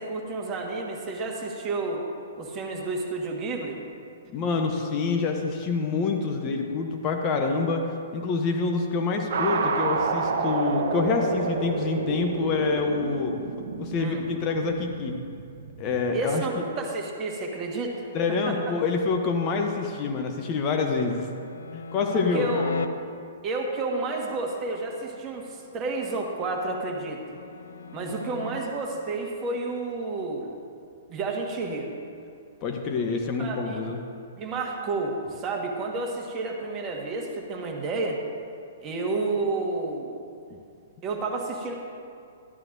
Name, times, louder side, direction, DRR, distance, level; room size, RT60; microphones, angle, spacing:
voice 1, 0.0-2.0 2.4-3.8 14.0-14.2 16.1-18.1 18.5-18.6 22.1-22.7 23.4-27.2 27.9-30.5 31.1-31.9 33.4-33.8 34.4-38.2 38.8-40.1 41.0-41.7, right 3 dB, 30° right, 0 dB, 1.5 m, -30 dB
voice 2, 4.3-13.3 13.8-15.2 15.8-16.6 18.1-21.3 21.7-22.5 32.6-34.0, left 4 dB, 30° left, 3 dB, 0.8 m, -26 dB
sound 1, 9.3-16.1, right 4 dB, 55° right, 0.7 m, -30 dB
sound 2, 20.6-22.9 26.2-28.6, left 4 dB, 65° left, 0.5 m, -36 dB
13.5 x 10.5 x 2.6 m, 2.4 s
figure-of-eight pair, 115°, 0 cm